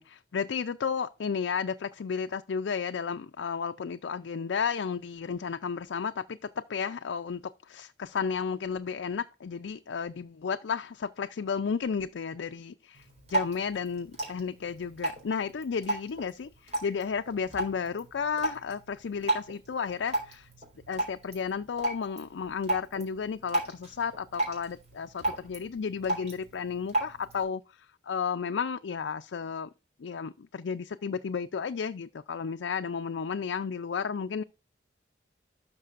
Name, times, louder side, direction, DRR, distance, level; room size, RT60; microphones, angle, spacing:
voice 1, 0.0-20.5 20.9-29.7 30.0-34.4, left 6 dB, 85° left, 0.4 m, -33 dB
Drip, 12.9-27.4, right 1 dB, 40° right, 4.1 m, -35 dB
12.0 x 6.0 x 2.5 m
head